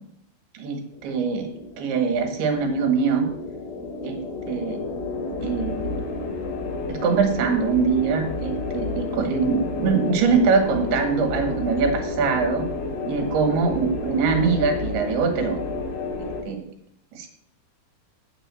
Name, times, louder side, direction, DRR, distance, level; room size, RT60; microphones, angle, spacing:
voice 1, 0.6-1.5 1.8-3.3 4.0-4.2 4.5-4.8 5.4-5.9 6.9-12.7 13.1-15.6 16.2-16.6 17.1-17.3, right 5 dB, 80° right, 6 dB, 3.5 m, -23 dB
sound 1, 0.9-16.4, left 3 dB, 75° left, 3.6 m, -31 dB
7.5 x 6.7 x 7.5 m, 0.74 s
omnidirectional pair, 4.6 m